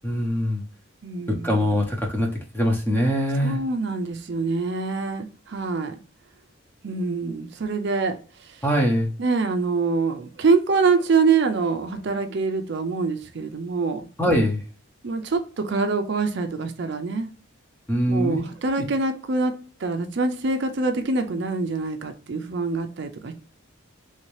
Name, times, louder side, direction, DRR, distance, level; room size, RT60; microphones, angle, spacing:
voice 1, 0.0-0.6 1.3-2.3 2.5-3.6 8.6-9.1 14.2-14.6 17.9-18.4 18.8-18.9, equal, 10° left, 0.7 m, -22 dB
voice 2, 1.0-1.6 3.4-5.9 6.8-8.2 8.5-8.6 9.2-14.0 15.0-17.3 18.1-23.3, right 4 dB, 55° right, 0.4 m, -25 dB
3.1 x 2.8 x 3.1 m
head